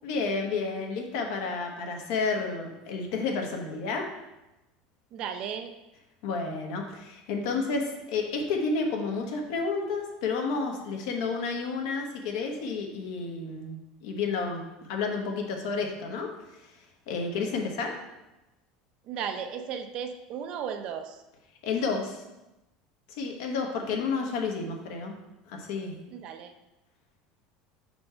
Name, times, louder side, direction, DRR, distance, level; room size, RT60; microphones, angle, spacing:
voice 1, 0.0-4.1 6.2-14.6 14.9-16.3 17.1-17.9 21.6-22.2 23.2-25.2 25.5-26.0, left 4 dB, 70° left, 2 dB, 1.1 m, -31 dB
voice 2, 5.1-5.7 19.0-21.2 26.1-26.5, right 7 dB, 40° right, 7 dB, 0.5 m, -35 dB
4.3 x 4.3 x 5.6 m, 0.98 s
cardioid pair, 165°, 2 cm